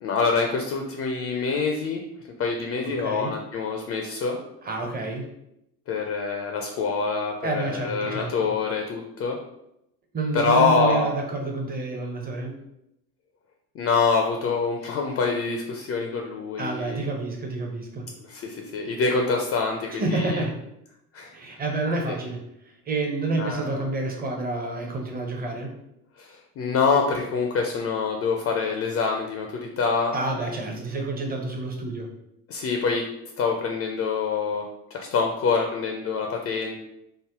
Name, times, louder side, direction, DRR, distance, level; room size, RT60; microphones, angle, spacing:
voice 1, 0.0-2.0 2.4-4.4 5.9-9.4 10.3-11.1 13.7-17.1 18.3-20.4 21.1-21.3 22.1-22.2 23.4-23.8 26.2-30.1 32.5-33.1 33.4-34.7 34.9-36.8, left 4 dB, 30° left, 2 dB, 0.4 m, -25 dB
voice 2, 2.8-3.4 4.6-5.3 7.4-8.3 10.1-12.6 16.6-18.1 19.9-20.6 21.3-22.4 22.9-25.8 30.1-32.1, right 2 dB, 20° right, 2 dB, 0.7 m, -29 dB
3.4 x 2.0 x 3.4 m, 0.81 s
figure-of-eight pair, 65°, 47 cm